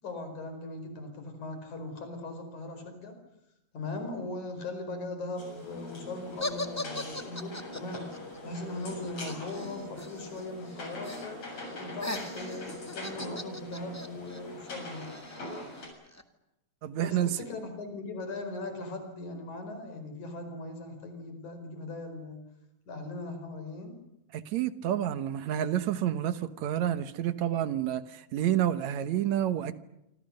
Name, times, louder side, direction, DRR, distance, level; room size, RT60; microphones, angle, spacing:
voice 1, 0.0-3.1 3.7-15.1 17.0-22.4 22.9-24.0, left 2 dB, 85° left, 6.2 m, -39 dB
sound 1, 5.4-15.9, left 1 dB, 65° left, 8.5 m, -43 dB
sound 2, 6.4-10.4 10.7-11.3 11.6-16.2, left 2 dB, 10° left, 1.2 m, -40 dB
voice 2, 16.8-17.4 24.3-29.7, right 11 dB, 75° right, 2.4 m, -29 dB
27.0 x 26.0 x 6.6 m
omnidirectional pair, 3.3 m